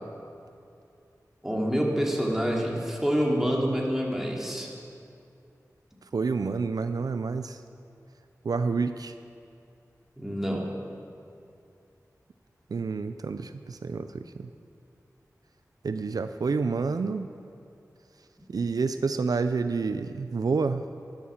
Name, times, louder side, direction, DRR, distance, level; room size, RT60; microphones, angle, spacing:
voice 1, 1.4-4.7 10.2-10.6, equal, 5° right, -2 dB, 2.9 m, -27 dB
voice 2, 6.1-7.6 8.4-9.1 12.7-14.5 15.8-17.3 18.5-20.8, right 4 dB, 75° right, 10 dB, 0.5 m, -28 dB
13.0 x 11.5 x 7.3 m, 2.5 s
wide cardioid pair, 55°, 6 cm